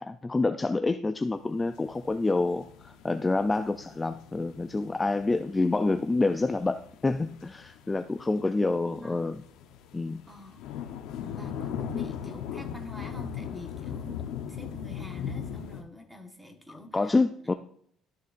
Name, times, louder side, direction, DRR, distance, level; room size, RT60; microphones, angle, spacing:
voice 1, 0.0-9.4 9.9-10.2 11.2-11.3 16.7-17.5, left 3 dB, 15° left, 9 dB, 0.3 m, -27 dB
sound 1, 1.6-15.8, left 8 dB, 85° left, 0.8 m, -39 dB
voice 2, 8.6-9.3 10.3-10.6 11.3-17.2 17.4-17.5, left 1 dB, 5° right, 3 dB, 1.3 m, -46 dB
13.0 x 6.6 x 2.5 m, 0.66 s
cardioid pair, 125°, 0 cm